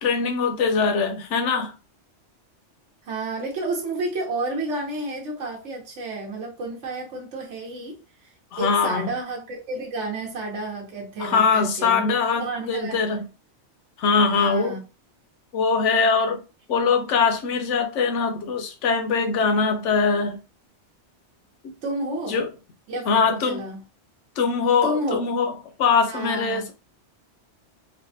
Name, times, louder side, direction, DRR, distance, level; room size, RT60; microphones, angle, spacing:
voice 1, 0.0-1.7 8.5-9.1 11.2-13.2 14.0-14.8 15.5-16.4 16.7-20.4 22.3-22.5 23.1-23.6 24.4-25.5 25.8-26.7, left 5 dB, 85° left, 1.0 m, -22 dB
voice 2, 3.1-8.0 8.6-13.2 14.3-14.8 21.8-22.4 22.9-23.8 24.8-25.2 26.1-26.7, right 2 dB, 90° right, 1.1 m, -31 dB
3.2 x 2.1 x 2.6 m
omnidirectional pair, 1.2 m